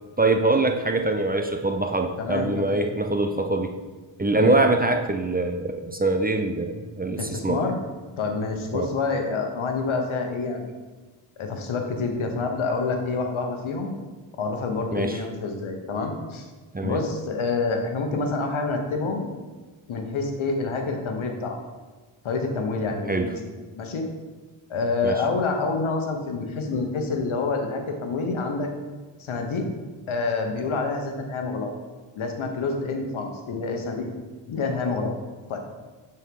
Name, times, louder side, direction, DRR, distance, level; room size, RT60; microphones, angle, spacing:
voice 1, 0.2-3.7 4.2-7.6 8.7-8.9 14.9-15.2 16.7-17.0 23.1-23.3 25.0-25.2, right 2 dB, 20° right, 4 dB, 0.6 m, -23 dB
voice 2, 2.2-2.8 4.3-4.6 7.2-7.8 8.2-10.7 11.4-13.9 14.4-16.5 16.8-19.3 19.9-21.6 22.2-23.3 23.8-24.0 24.7-28.7 29.2-29.7 30.1-31.7 32.1-34.1 34.5-35.1 35.5-35.6, left 3 dB, 70° left, 4 dB, 1.3 m, -27 dB
9.7 x 4.5 x 3.8 m, 1.3 s
cardioid pair, 55°, 49 cm